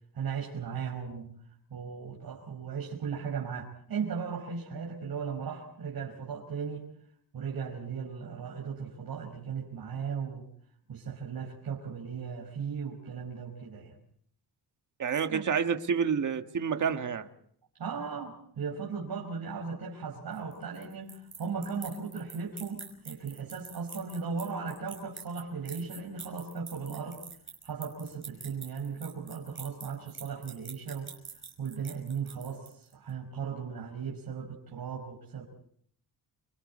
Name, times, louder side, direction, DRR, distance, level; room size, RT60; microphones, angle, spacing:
voice 1, 0.1-1.3 1.7-6.9 7.3-10.4 10.9-13.9 15.3-15.4 17.8-27.2 27.6-31.1 31.6-35.4, right 6 dB, 65° right, 0 dB, 5.3 m, -37 dB
voice 2, 15.0-17.3, right 7 dB, 50° right, 7 dB, 1.6 m, -29 dB
sound 1, 20.3-32.9, right 5 dB, 30° right, 5.7 m, -46 dB
30.0 x 26.0 x 4.3 m, 0.65 s
wide cardioid pair, 165°, 40 cm